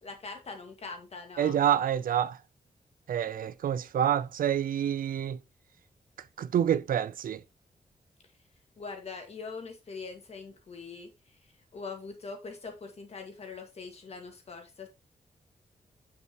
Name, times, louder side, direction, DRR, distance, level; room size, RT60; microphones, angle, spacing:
voice 1, 0.0-1.6 8.8-11.4 11.7-14.9, left 4 dB, 45° left, 1.9 m, -42 dB
voice 2, 1.4-2.4 3.1-5.4 6.4-7.4, right 9 dB, 75° right, 0.5 m, -27 dB
8.3 x 6.7 x 3.0 m
wide cardioid pair, 160°, 15 cm